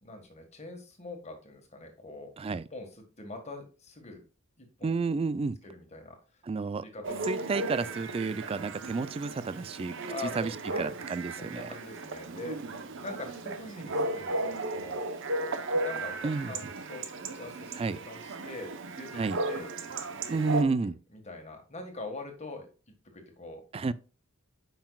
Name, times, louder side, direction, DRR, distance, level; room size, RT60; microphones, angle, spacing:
voice 1, 0.0-4.2 4.6-4.9 5.6-6.4 6.8-7.3 10.1-10.9 11.4-12.6 13.0-15.1 15.8-19.7 21.1-22.7 23.1-23.6, left 2 dB, 30° left, 1.6 m, -43 dB
voice 2, 4.8-5.6 6.4-6.8 7.3-9.9 10.4-11.7 16.2-16.5 17.8-18.0 19.1-19.4 20.3-21.0 23.7-23.9, right 4 dB, 25° right, 0.3 m, -31 dB
Chatter / Bark / Livestock farm animals working animals, 7.0-20.6, right 2 dB, 60° right, 0.8 m, -35 dB
8.7 x 5.7 x 2.3 m
head